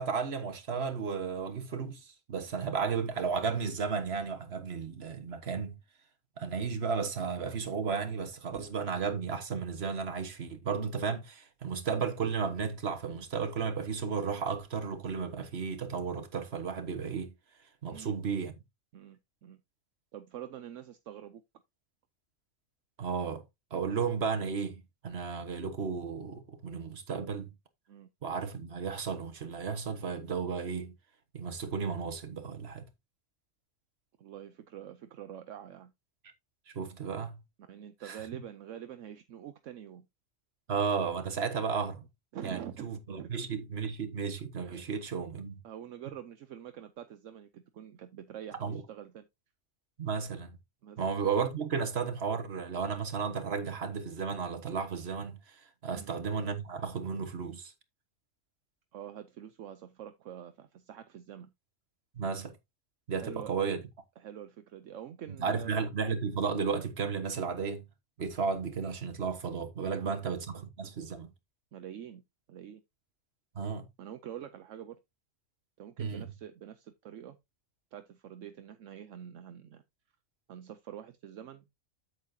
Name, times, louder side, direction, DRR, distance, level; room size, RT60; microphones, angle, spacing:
voice 1, 0.0-5.8 6.4-17.3 17.8-18.5 23.0-23.4 23.7-27.5 28.2-30.9 31.3-32.8 36.7-37.4 38.0-38.2 40.7-42.0 42.4-45.6 48.6-48.8 50.0-50.6 51.0-57.7 62.1-62.6 63.1-63.8 65.4-67.8 68.2-71.3 73.5-73.9 76.0-76.3, right 5 dB, 50° right, 1.6 m, -34 dB
voice 2, 18.9-19.6 20.1-21.4 27.9-28.1 34.2-35.9 37.6-40.1 42.3-42.8 43.1-43.3 44.6-45.0 45.6-49.3 50.8-51.0 55.9-56.1 58.9-61.5 63.2-63.5 64.2-65.8 69.8-70.3 71.7-72.2 72.5-72.8 74.0-75.0 75.8-77.4 77.9-79.8 80.5-81.7, right 10 dB, 70° right, 1.1 m, -46 dB
8.5 x 8.1 x 2.7 m
omnidirectional pair, 1.4 m